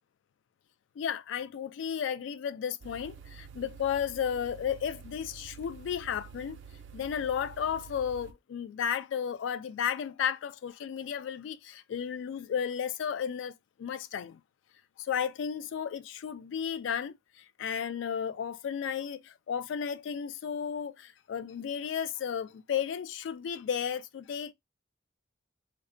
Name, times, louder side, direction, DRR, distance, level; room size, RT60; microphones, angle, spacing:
voice 1, 1.0-6.6 6.9-14.4 15.0-24.5, left 8 dB, 80° left, 0.3 m, -33 dB
sound 1, 2.8-8.3, right 6 dB, 70° right, 0.4 m, -49 dB
3.1 x 2.1 x 2.5 m
head